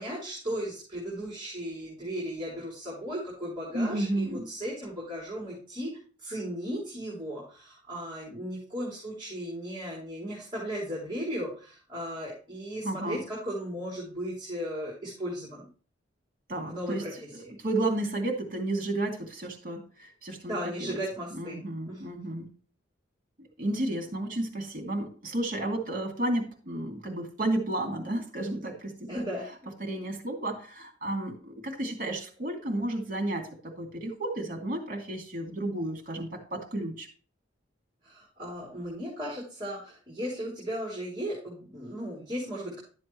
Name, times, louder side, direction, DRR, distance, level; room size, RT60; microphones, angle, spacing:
voice 1, 0.0-15.7 16.6-17.1 17.4-17.5 20.4-21.6 21.9-22.2 29.1-29.5 38.0-42.8, equal, 25° right, -4 dB, 3.7 m, -36 dB
voice 2, 3.7-4.5 12.8-13.2 16.5-17.1 17.3-21.0 21.3-22.5 23.4-29.2 29.8-37.1, right 1 dB, 45° right, 2 dB, 2.7 m, -32 dB
12.0 x 7.6 x 3.2 m, 0.40 s
head